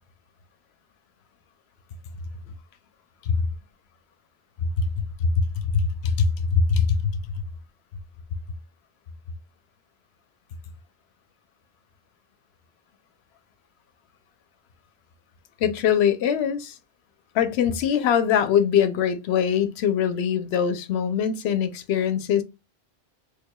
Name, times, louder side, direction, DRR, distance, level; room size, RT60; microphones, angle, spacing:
voice 1, 4.6-7.2 15.6-16.8 17.3-22.4, left 7 dB, 85° left, 0.8 m, -23 dB
4.7 x 2.5 x 2.2 m
omnidirectional pair, 1.1 m